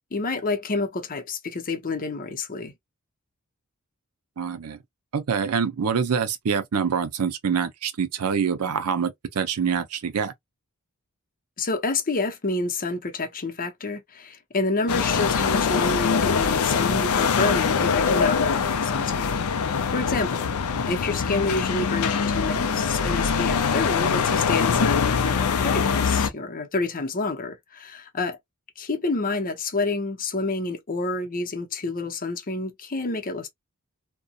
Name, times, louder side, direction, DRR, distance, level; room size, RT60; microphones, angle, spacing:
voice 1, 0.1-2.7 11.6-20.4 20.9-28.4 28.8-33.5, left 3 dB, 40° left, 0.7 m, -28 dB
voice 2, 4.4-4.8 5.1-10.3, right 6 dB, 80° right, 0.5 m, -25 dB
sound 1, 14.9-26.3, left 6 dB, 75° left, 0.5 m, -23 dB
2.7 x 2.2 x 2.3 m
head